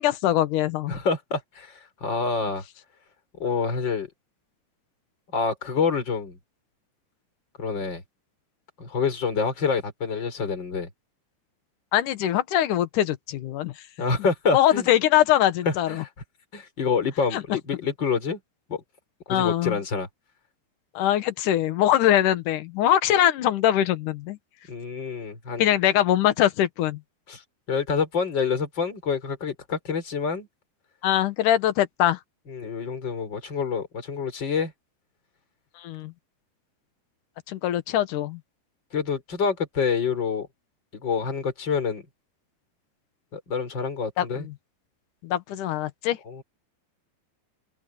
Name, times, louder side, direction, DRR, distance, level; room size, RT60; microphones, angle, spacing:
voice 1, 0.0-1.0 11.9-13.7 14.5-16.0 17.3-17.4 19.3-19.8 20.9-24.4 25.6-27.0 31.0-32.2 35.8-36.1 37.5-38.4 44.2-44.5 45.2-46.2, left 12 dB, 70° left, 2.0 m, -22 dB
voice 2, 0.9-2.6 3.4-4.1 5.3-6.4 7.6-8.0 8.8-10.9 14.0-14.9 15.7-16.1 16.5-18.4 18.7-18.8 19.3-20.1 24.7-25.7 27.3-27.4 27.7-30.5 32.5-34.7 38.9-40.5 40.9-42.0 43.3-44.5 46.3-46.4, left 5 dB, 25° left, 5.0 m, -27 dB
open air
omnidirectional pair, 5.4 m